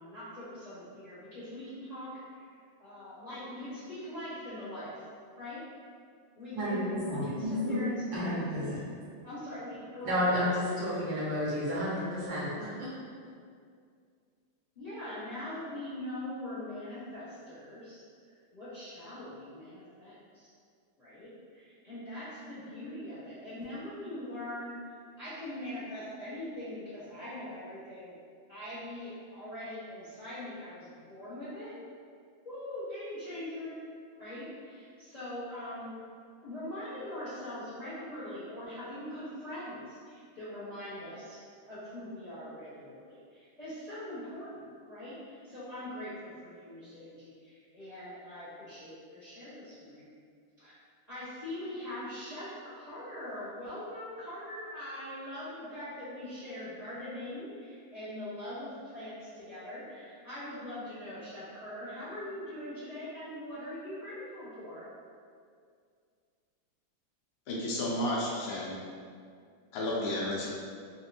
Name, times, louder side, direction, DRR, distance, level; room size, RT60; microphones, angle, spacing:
voice 1, 0.0-2.4 2.8-5.0 5.4-5.6 6.4-8.3 9.2-10.2 14.7-18.0 18.5-20.5 21.0-24.7 25.2-28.2 28.5-31.7 32.4-33.8 34.2-35.9 36.4-41.4 41.7-50.1 50.6-50.8 51.1-64.9, left 1 dB, 25° left, -14 dB, 1.1 m, -42 dB
voice 2, 6.5-7.8 8.1-8.8 10.0-12.9, equal, 70° right, -7 dB, 1.4 m, -31 dB
voice 3, 67.5-68.8 69.7-70.5, left 1 dB, 80° left, -5 dB, 1.4 m, -32 dB
3.8 x 2.5 x 2.9 m, 2.2 s
omnidirectional pair, 2.2 m